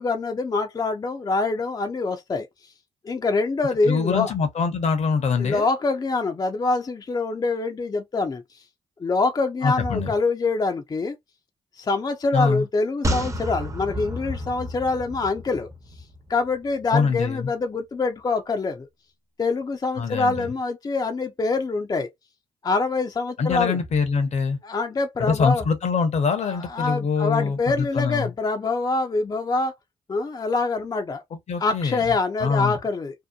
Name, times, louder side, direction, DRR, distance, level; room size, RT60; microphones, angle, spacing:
voice 1, 0.0-2.5 3.0-4.3 5.4-8.6 9.0-11.2 11.8-15.7 16.3-18.9 19.4-22.1 22.6-23.8 24.6-25.6 26.4-29.7 30.1-31.2 31.6-33.1, left 3 dB, 30° left, 0.5 m, -25 dB
voice 2, 3.8-5.7 9.6-10.2 12.3-12.7 16.9-17.5 20.0-20.5 23.4-24.6 25.2-28.3 31.3-32.0 32.4-32.8, left 5 dB, 60° left, 0.8 m, -24 dB
sound 1, 13.0-16.5 16.8-16.9, equal, 25° right, 0.7 m, -30 dB
2.7 x 2.1 x 2.3 m
cardioid pair, 65°, 13 cm